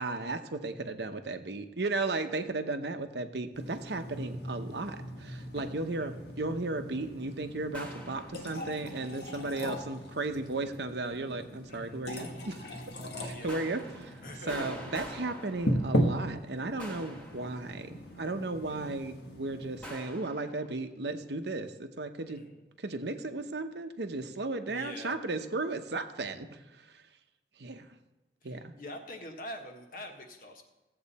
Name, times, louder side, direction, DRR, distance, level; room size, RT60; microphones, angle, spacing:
voice 1, 0.0-12.7 13.2-22.4 22.8-27.0 27.6-27.9 28.4-28.7, right 2 dB, 75° right, 7 dB, 0.9 m, -35 dB
sound 1, 3.5-19.9, equal, 65° left, 1.3 m, -38 dB
sound 2, 7.7-8.9 13.5-16.3 16.8-18.1 19.8-20.7, equal, 5° left, 1.6 m, -46 dB
voice 2, 11.7-12.0 13.2-13.6 14.2-14.8 18.6-18.9 22.3-22.6 24.6-25.2 28.4-30.6, left 1 dB, 50° left, 4 dB, 1.4 m, -45 dB
15.0 x 7.8 x 4.2 m, 1.1 s
head